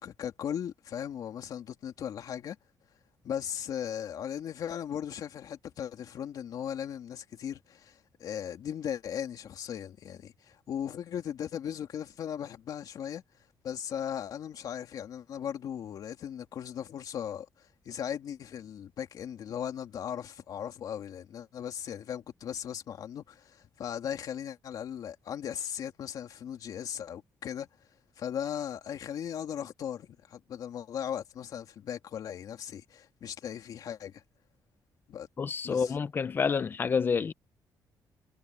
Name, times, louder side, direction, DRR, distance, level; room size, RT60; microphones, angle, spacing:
voice 1, 0.0-2.6 3.2-13.2 13.6-27.7 28.2-34.2 35.1-35.3 35.6-35.9, left 9 dB, 55° left, 2.8 m, -37 dB
voice 2, 35.4-37.3, left 5 dB, 30° left, 0.8 m, -28 dB
cardioid pair, 170°, 8 cm